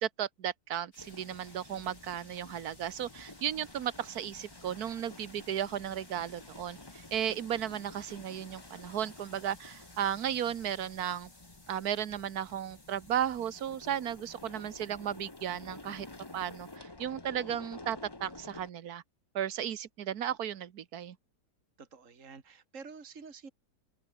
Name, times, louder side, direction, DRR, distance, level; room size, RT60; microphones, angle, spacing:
voice 1, 0.0-11.3 11.7-16.1 16.3-19.0 19.3-21.2, right 10 dB, 65° right, 1.6 m, -35 dB
sound 1, 0.9-16.8, left 2 dB, 60° left, 7.3 m, -59 dB
sound 2, 1.0-18.7, left 2 dB, 15° left, 1.5 m, -51 dB
voice 2, 21.8-23.5, right 5 dB, 50° right, 2.8 m, -48 dB
omnidirectional pair, 1.8 m